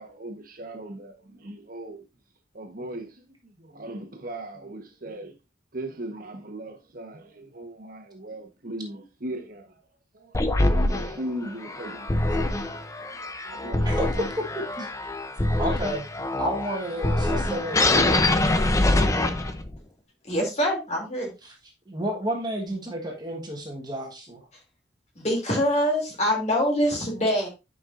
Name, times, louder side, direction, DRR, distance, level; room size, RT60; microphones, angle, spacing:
voice 1, 0.0-2.0 2.5-3.2 3.6-5.3 5.7-9.8 10.1-14.2, right 1 dB, 50° right, 1.1 m, -38 dB
sound 1, 10.3-19.8, left 2 dB, 15° left, 0.6 m, -24 dB
voice 2, 13.8-15.1 15.6-16.0 16.4-18.0 21.4-21.5 21.9-24.4, right 1 dB, 20° right, 1.4 m, -31 dB
voice 3, 20.2-21.3 25.1-27.5, equal, 35° left, 2.8 m, -24 dB
9.5 x 5.4 x 2.6 m
head